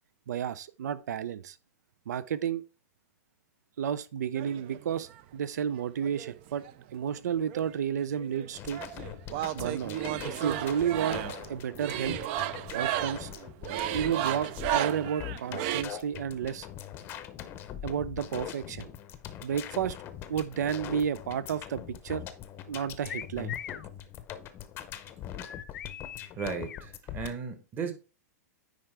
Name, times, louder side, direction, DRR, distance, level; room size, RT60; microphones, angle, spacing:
voice 1, 0.3-1.6 2.1-2.6 3.8-6.6 6.9-8.8 9.5-10.0 10.2-11.2 11.5-12.2 12.7-13.3 13.9-16.7 17.8-18.9 19.4-20.0 20.3-22.2 22.7-23.6, right 8 dB, 80° right, 0.6 m, -31 dB
sound 1, 4.3-5.2 6.0-7.2 7.5-15.8, right 12 dB, 40° right, 0.5 m, -34 dB
sound 2, 8.5-27.3, left 10 dB, 25° left, 0.7 m, -42 dB
sound 3, 23.1-23.9 25.4-26.9, left 9 dB, 85° left, 0.7 m, -41 dB
voice 2, 26.4-27.9, right 5 dB, 20° right, 1.1 m, -35 dB
9.4 x 4.7 x 3.3 m
hypercardioid pair, 150°, 9 cm